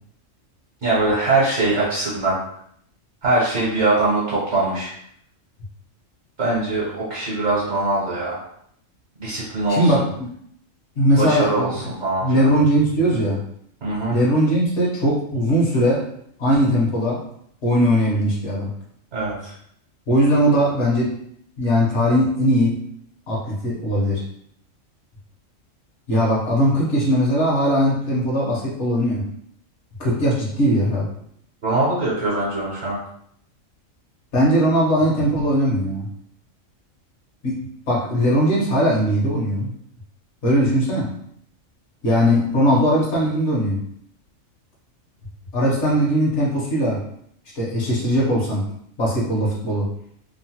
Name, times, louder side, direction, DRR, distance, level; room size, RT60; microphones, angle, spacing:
voice 1, 0.8-2.4 3.2-4.9 6.4-8.4 9.2-9.9 11.2-12.5 13.8-14.1 19.1-19.5 31.6-33.0, right 2 dB, 60° right, -6 dB, 1.1 m, -22 dB
voice 2, 9.7-10.3 11.0-11.8 12.2-13.4 14.1-16.1 16.4-17.2 17.6-18.7 20.1-21.1 21.6-22.8 23.3-24.2 26.1-29.3 30.0-31.1 34.3-36.1 37.4-37.6 37.9-39.7 40.4-41.1 42.0-43.8 45.5-47.0 47.5-48.6 49.0-49.9, equal, 60° left, -4 dB, 1.1 m, -19 dB
3.0 x 2.1 x 2.8 m, 0.69 s
omnidirectional pair, 1.4 m